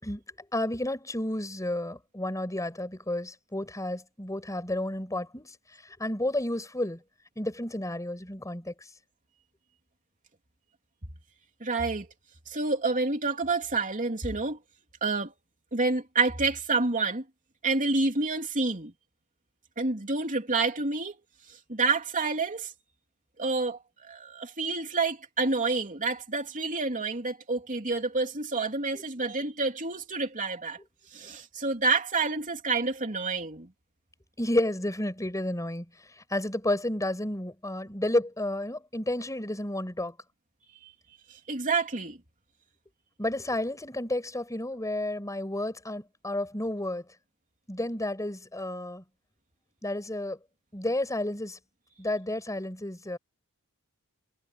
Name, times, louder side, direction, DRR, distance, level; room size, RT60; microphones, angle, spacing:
voice 1, 0.5-5.5 6.0-7.0 7.4-8.7 28.9-29.0 34.4-35.9 36.3-40.1 43.2-47.0 47.7-49.0 49.8-50.4 50.7-51.6 52.0-53.2, left 1 dB, 15° left, 6.0 m, -31 dB
voice 2, 11.6-12.1 12.5-14.6 15.0-15.3 15.7-17.2 17.6-18.9 19.8-21.1 21.7-22.7 23.4-30.8 31.1-33.7 41.5-42.2, right 3 dB, 35° right, 3.2 m, -28 dB
head